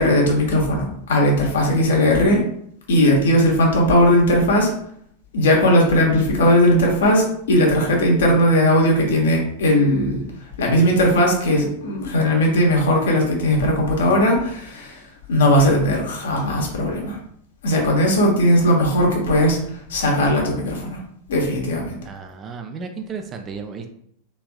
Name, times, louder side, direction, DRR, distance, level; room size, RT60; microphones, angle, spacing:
voice 1, 0.0-2.4 2.9-4.7 5.3-10.2 10.6-15.0 15.3-17.2 17.6-19.6 19.9-21.0 21.3-22.0, equal, 60° left, -1 dB, 0.9 m, -18 dB
voice 2, 22.0-23.9, right 5 dB, 25° right, 5 dB, 0.4 m, -33 dB
3.3 x 3.2 x 2.3 m, 0.69 s
figure-of-eight pair, 90°, 0 cm